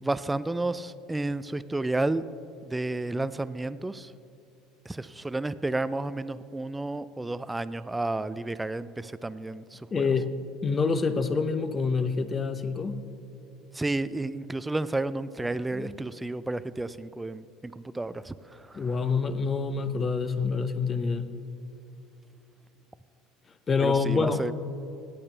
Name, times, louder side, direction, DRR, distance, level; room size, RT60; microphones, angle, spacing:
voice 1, 0.0-2.2 2.6-4.1 4.9-10.1 13.7-18.8 23.8-24.5, right 2 dB, 10° right, 15 dB, 0.4 m, -31 dB
voice 2, 9.9-10.3 10.6-13.0 15.7-15.9 18.7-21.3 23.7-24.4, left 4 dB, 30° left, 11 dB, 0.8 m, -27 dB
17.5 x 8.6 x 3.3 m, 2.5 s
hypercardioid pair, 85°, 0 cm